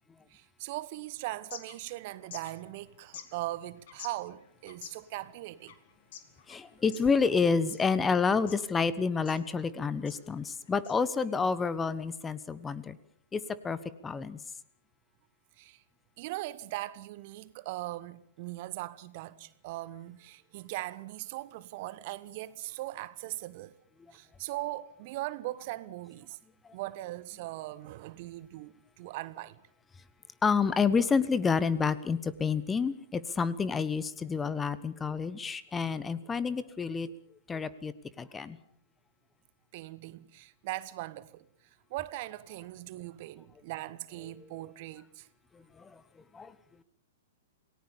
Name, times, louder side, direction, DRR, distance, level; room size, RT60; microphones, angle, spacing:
voice 1, 0.3-5.7 15.6-15.8 16.2-23.7 24.1-26.4 26.7-29.6 39.7-41.5 41.9-45.3, right 17 dB, 45° right, 1.1 m, -40 dB
sound 1, 1.3-11.5, left 9 dB, 55° left, 2.8 m, -52 dB
voice 2, 6.5-13.0 13.3-13.8 14.0-14.4 30.4-37.1 37.5-38.6 45.8-45.9 46.3-46.5, left 5 dB, 15° left, 1.2 m, -29 dB
28.5 x 18.5 x 7.0 m
figure-of-eight pair, 105°, 0 cm